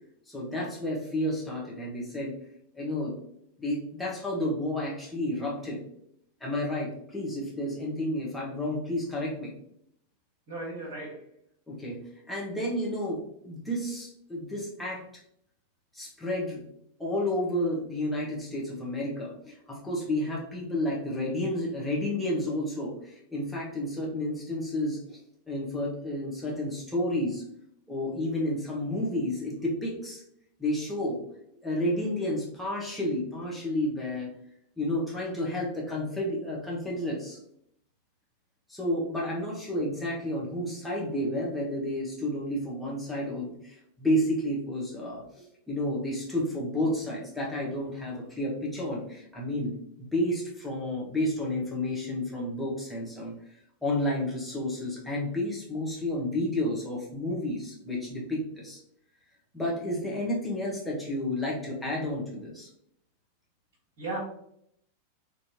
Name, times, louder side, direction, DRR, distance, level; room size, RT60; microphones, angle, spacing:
voice 1, 0.3-2.3 2.7-3.2 3.6-5.8 6.4-9.5 11.7-12.0 12.3-15.0 15.9-16.6 17.0-25.2 25.5-27.4 27.9-30.2 30.6-31.2 31.6-34.3 34.8-37.4 38.7-53.4 53.8-58.8 59.5-62.7, left 1 dB, 5° left, -5 dB, 1.4 m, -31 dB
voice 2, 10.5-11.3 64.0-64.2, right 2 dB, 45° right, -7 dB, 1.4 m, -36 dB
4.3 x 3.2 x 2.8 m, 0.72 s
figure-of-eight pair, 90°, 0 cm